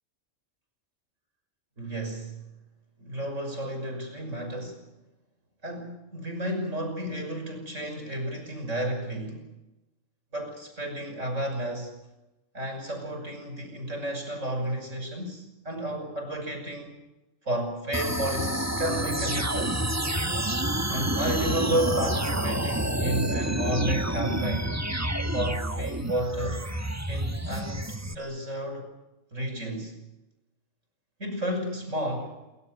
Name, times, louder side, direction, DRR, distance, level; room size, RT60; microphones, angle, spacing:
voice 1, 1.8-2.4 3.0-4.8 5.6-9.5 10.3-12.0 12.5-17.0 17.4-19.8 20.9-24.8 25.3-26.6 27.1-28.9 29.3-30.0 31.2-32.4, right 1 dB, 75° right, 6 dB, 6.4 m, -32 dB
sound 1, 17.9-28.2, right 1 dB, 15° right, 1.4 m, -28 dB
27.5 x 24.0 x 6.6 m, 0.97 s
omnidirectional pair, 1.3 m